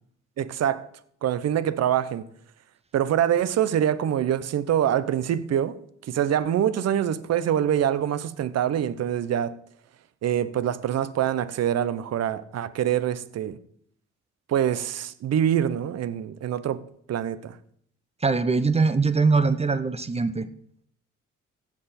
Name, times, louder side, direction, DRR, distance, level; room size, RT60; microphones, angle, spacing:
voice 1, 0.4-0.9 1.2-2.2 2.9-5.8 6.1-9.6 10.2-13.6 14.5-17.6, right 10 dB, 60° right, 0.7 m, -25 dB
voice 2, 18.2-20.5, right 4 dB, 20° right, 0.6 m, -22 dB
15.5 x 6.1 x 4.2 m
cardioid pair, 90°, 30 cm